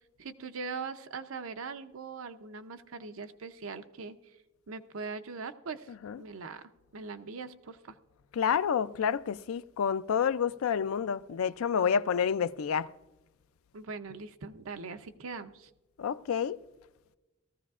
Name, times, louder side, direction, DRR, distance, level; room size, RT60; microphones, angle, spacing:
voice 1, 0.2-4.2 4.7-6.6 6.9-8.0 13.7-15.7, right 4 dB, 80° right, 0.6 m, -41 dB
voice 2, 5.9-6.2 8.3-12.9 16.0-16.6, left 7 dB, 85° left, 0.4 m, -29 dB
18.0 x 14.0 x 2.4 m
head